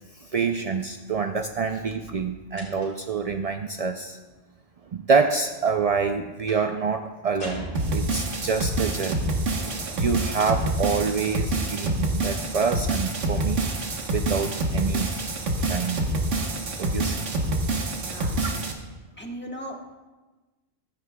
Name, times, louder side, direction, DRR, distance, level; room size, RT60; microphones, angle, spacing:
voice 1, 0.2-4.2 4.9-13.7 14.1-15.1 15.6-16.1 16.8-17.2 18.4-18.6, right 5 dB, 70° right, 5 dB, 0.3 m, -27 dB
sound 1, 2.6-3.2 6.5-6.8 7.4-8.5, equal, 45° left, 3.2 m, -39 dB
sound 2, 7.8-18.7, right 2 dB, 90° right, 1.5 m, -27 dB
voice 2, 18.0-18.6 19.2-20.0, equal, 10° left, -1 dB, 1.3 m, -38 dB
15.0 x 13.0 x 2.2 m, 1.2 s
omnidirectional pair, 1.2 m